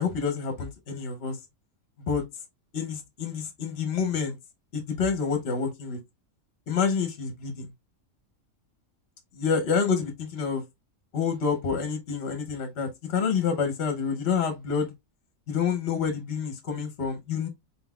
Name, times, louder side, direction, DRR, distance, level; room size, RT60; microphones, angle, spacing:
voice 1, 0.0-1.4 2.1-2.2 2.7-4.4 4.7-6.0 6.7-7.7 9.3-10.6 11.1-14.9 15.5-17.5, left 6 dB, 55° left, 1.0 m, -28 dB
4.1 x 3.9 x 2.3 m
omnidirectional pair, 1.4 m